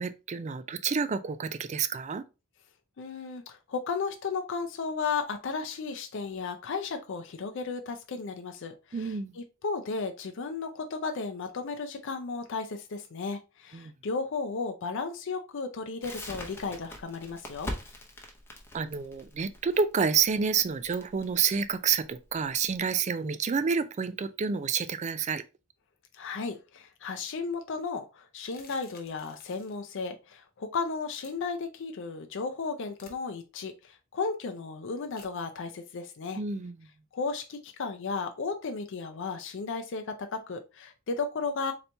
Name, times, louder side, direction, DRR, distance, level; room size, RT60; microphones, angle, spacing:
voice 1, 0.0-2.3 8.9-9.4 13.7-13.9 18.7-25.4 36.3-36.7, right 6 dB, 35° right, 0.3 m, -29 dB
voice 2, 3.0-17.7 26.1-36.4 37.1-41.7, left 4 dB, 60° left, 0.5 m, -34 dB
Crackle, 16.0-22.8, left 1 dB, 10° left, 0.8 m, -42 dB
sound 1, 28.5-29.8 31.1-31.3 32.9-33.2 35.2-35.3, left 5 dB, 45° left, 1.1 m, -53 dB
4.1 x 2.9 x 3.3 m
head